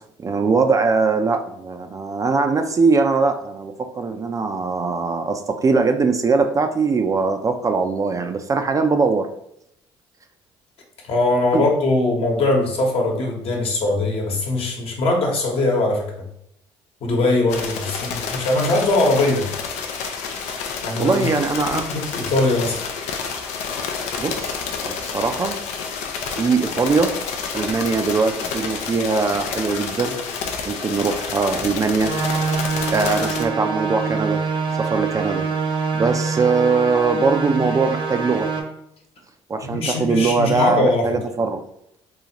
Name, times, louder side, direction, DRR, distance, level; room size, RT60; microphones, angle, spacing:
voice 1, 0.2-9.3 11.5-11.6 21.0-21.9 24.2-25.6 26.3-27.1 27.5-30.2 30.7-32.2 32.9-34.4 34.8-35.5 36.0-38.5 39.5-41.6, right 4 dB, 30° right, 6 dB, 0.4 m, -21 dB
voice 2, 11.0-16.3 17.0-19.5 20.8-22.8 39.6-41.1, left 2 dB, 55° left, 0 dB, 1.1 m, -21 dB
sound 1, 17.5-33.4, left 5 dB, 80° left, 0.5 m, -29 dB
sound 2, 32.0-38.6, right 4 dB, 50° right, 0.8 m, -25 dB
3.9 x 2.4 x 2.9 m, 0.75 s
supercardioid pair, 80°, 12 cm